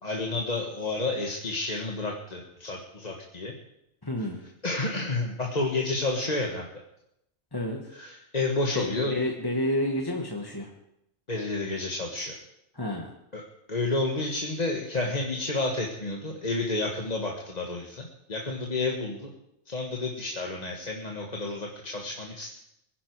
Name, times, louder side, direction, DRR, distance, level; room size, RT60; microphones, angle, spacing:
voice 1, 0.0-3.5 4.6-6.7 7.9-9.2 11.3-12.4 13.3-13.4 13.7-19.3 19.7-22.5, left 2 dB, 35° left, 0 dB, 1.6 m, -30 dB
voice 2, 4.0-4.4 7.5-7.8 8.7-10.7 12.7-13.1, left 1 dB, 20° left, 1 dB, 1.5 m, -30 dB
23.5 x 10.5 x 4.7 m, 0.82 s
omnidirectional pair, 1.2 m